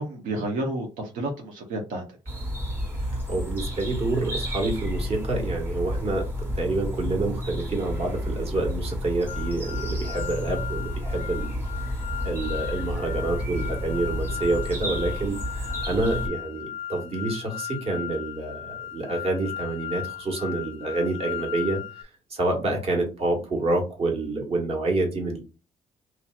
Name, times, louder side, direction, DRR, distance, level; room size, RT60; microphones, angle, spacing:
voice 1, 0.0-2.0, right 1 dB, 85° right, 2 dB, 0.7 m, -30 dB
sound 1, 2.3-16.3, equal, 15° right, 1.3 m, -31 dB
voice 2, 3.1-11.6 12.2-25.4, right 2 dB, 45° right, 2 dB, 1.3 m, -28 dB
sound 2, 9.3-22.0, left 10 dB, 45° left, 0.4 m, -37 dB
3.1 x 2.7 x 2.3 m, 0.30 s
cardioid pair, 95°, 14 cm